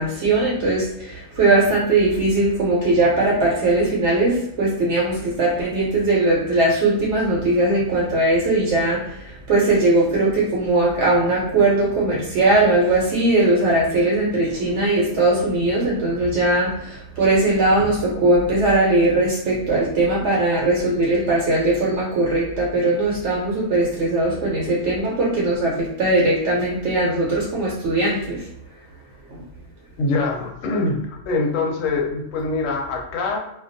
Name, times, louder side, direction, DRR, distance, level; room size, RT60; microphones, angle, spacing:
voice 1, 0.0-28.4 29.3-29.4, right 2 dB, 65° right, -5 dB, 0.9 m, -19 dB
voice 2, 30.0-33.4, left 3 dB, 85° left, 1 dB, 1.0 m, -24 dB
2.3 x 2.2 x 2.5 m, 0.78 s
omnidirectional pair, 1.3 m